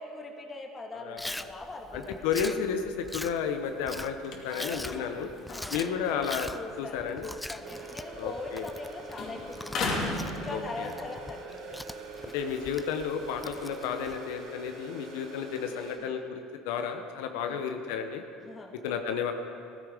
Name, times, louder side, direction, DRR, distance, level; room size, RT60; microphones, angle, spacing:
voice 1, 0.0-2.5 4.5-5.1 5.5-5.8 6.5-10.0 10.3-12.1 15.6-16.1 17.3-17.6 18.4-18.8, left 2 dB, 20° left, 3 dB, 1.9 m, -42 dB
Chewing mastication, 1.2-14.2, left 1 dB, 5° left, 0.4 m, -43 dB
voice 2, 1.9-5.3 5.7-6.5 6.8-7.3 8.2-8.7 10.5-10.9 12.3-18.2 18.7-19.3, left 7 dB, 80° left, 6 dB, 1.0 m, -32 dB
sound 1, 3.2-8.9 9.1-11.2 11.6-14.7, left 2 dB, 50° left, 2.6 m, -39 dB
sound 2, 7.6-16.0, right 2 dB, 70° right, 3.5 m, -45 dB
16.0 x 14.5 x 5.2 m, 2.5 s
supercardioid pair, 120°, 0 cm